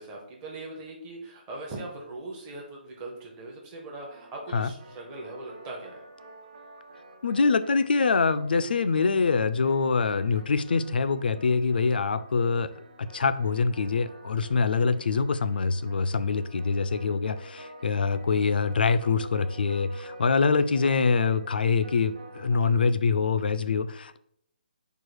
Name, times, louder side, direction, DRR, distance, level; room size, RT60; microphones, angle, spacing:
voice 1, 0.0-6.0, right 2 dB, 10° right, 0.7 m, -40 dB
sound 1, 4.1-22.9, right 1 dB, 45° right, 1.0 m, -48 dB
voice 2, 7.2-24.2, left 4 dB, 65° left, 0.3 m, -25 dB
4.7 x 2.3 x 4.7 m
hypercardioid pair, 175°, 5 cm